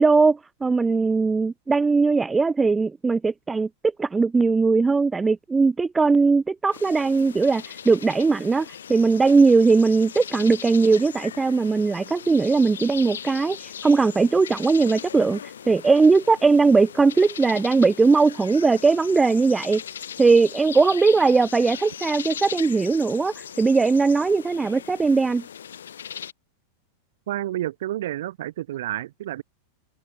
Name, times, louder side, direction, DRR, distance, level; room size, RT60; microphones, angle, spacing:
voice 1, 0.0-3.7 4.0-15.4 15.7-19.8 20.2-25.4, right 4 dB, 10° right, 0.4 m, -19 dB
sound 1, 6.7-26.3, left 8 dB, 65° left, 1.4 m, -39 dB
voice 2, 27.3-29.4, right 14 dB, 55° right, 2.3 m, -30 dB
figure-of-eight pair, 90°, 0 cm